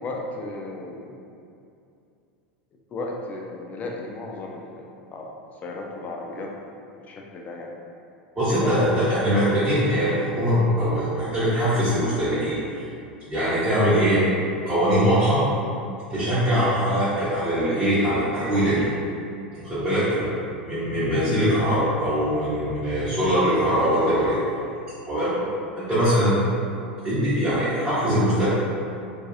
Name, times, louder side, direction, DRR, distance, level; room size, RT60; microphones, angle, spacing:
voice 1, 0.0-1.2 2.9-5.3 5.6-6.7 7.1-7.7 8.5-9.0 16.4-16.7 20.1-20.4 25.4-25.5, left 2 dB, 30° left, 0 dB, 0.4 m, -35 dB
voice 2, 8.4-12.8 13.3-14.2 14.6-15.4 16.1-18.9 19.6-20.3 20.7-24.4 25.1-25.3 25.7-26.4 27.0-28.5, equal, 15° right, -15 dB, 0.9 m, -22 dB
2.5 x 2.3 x 2.6 m, 2.6 s
figure-of-eight pair, 85°, 5 cm